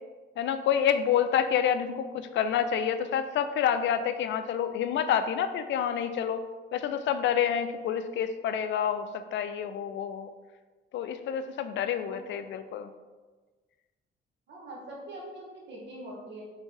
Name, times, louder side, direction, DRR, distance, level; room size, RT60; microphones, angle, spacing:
voice 1, 0.4-6.4 6.7-10.3 10.9-12.9, left 8 dB, 65° left, 10 dB, 0.4 m, -28 dB
voice 2, 12.0-12.4 14.5-16.4, right 1 dB, 65° right, -3 dB, 1.4 m, -43 dB
4.4 x 3.4 x 3.3 m, 1.3 s
cardioid pair, 90°, 20 cm